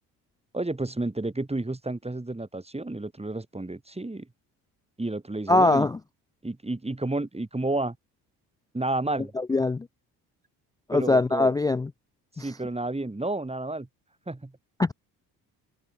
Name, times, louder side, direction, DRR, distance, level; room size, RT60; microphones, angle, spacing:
voice 1, 0.5-4.3 5.0-5.9 6.4-8.0 8.7-9.3 10.9-11.5 12.4-13.9 14.3-14.5, right 2 dB, 15° right, 7.5 m, -31 dB
voice 2, 5.5-6.0 9.4-9.9 10.9-11.9 12.4-12.5 14.8-14.9, left 2 dB, 10° left, 0.4 m, -22 dB
figure-of-eight pair, 50°, 47 cm